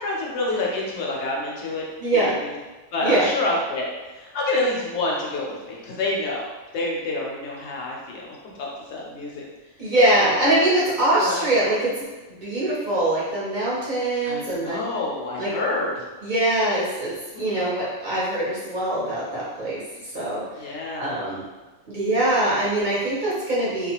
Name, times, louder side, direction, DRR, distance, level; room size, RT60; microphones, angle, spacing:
voice 1, 0.0-1.8 2.1-2.6 2.9-6.4 6.7-9.5 10.2-10.5 11.2-11.4 14.2-16.0 17.3-17.7 20.5-21.3, left 2 dB, 65° left, -2 dB, 0.8 m, -28 dB
voice 2, 2.0-2.4 3.0-3.3 9.8-11.9 12.4-14.8 15.4-15.5 16.2-19.8 20.1-20.4 20.7-21.4 21.9-23.9, right 1 dB, 45° right, -8 dB, 0.7 m, -23 dB
2.4 x 2.2 x 2.8 m, 1.2 s
omnidirectional pair, 1.4 m